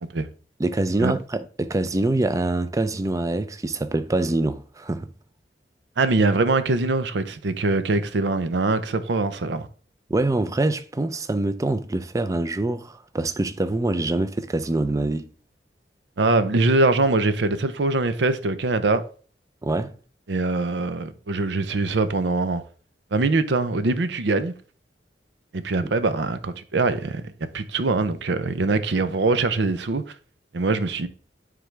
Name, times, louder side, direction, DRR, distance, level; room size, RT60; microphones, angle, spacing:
voice 1, 0.6-5.1 10.1-15.3 19.6-19.9 25.8-25.9, right 2 dB, 20° right, 0.4 m, -25 dB
voice 2, 6.0-9.7 16.2-19.0 20.3-22.6 23.1-24.5 25.5-27.2 27.5-30.1 30.5-31.1, right 3 dB, 85° right, 0.6 m, -23 dB
9.3 x 3.8 x 3.3 m
head